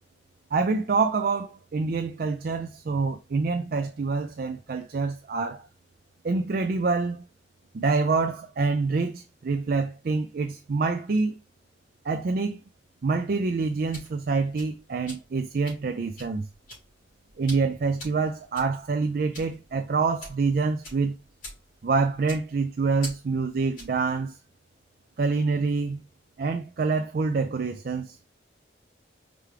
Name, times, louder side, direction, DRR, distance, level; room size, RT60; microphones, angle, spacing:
voice 1, 0.5-5.6 6.2-7.2 7.7-11.4 12.1-12.6 13.0-16.5 17.4-21.1 21.8-24.4 25.2-26.0 26.4-28.2, right 4 dB, 50° right, 0.4 m, -26 dB
sound 1, 13.7-24.1, left 1 dB, 45° left, 2.9 m, -46 dB
4.9 x 3.4 x 3.2 m
head